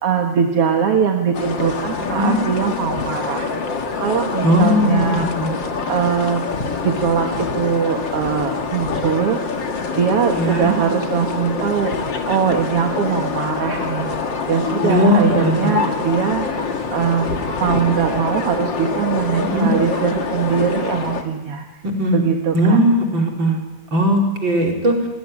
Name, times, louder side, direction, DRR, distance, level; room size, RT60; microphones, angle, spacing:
voice 1, 0.0-3.7 4.0-5.3 5.9-6.5 6.8-9.4 9.9-14.1 14.5-21.7 22.1-22.8, right 7 dB, 50° right, 3 dB, 2.2 m, -21 dB
sound 1, 1.3-21.2, left 5 dB, 40° left, 2.1 m, -25 dB
voice 2, 4.4-5.5 10.3-10.7 14.8-15.7 19.4-19.7 21.8-22.2 22.5-23.6 23.9-25.0, equal, 35° right, 1 dB, 5.0 m, -18 dB
29.0 x 20.5 x 10.0 m, 1.2 s
omnidirectional pair, 4.0 m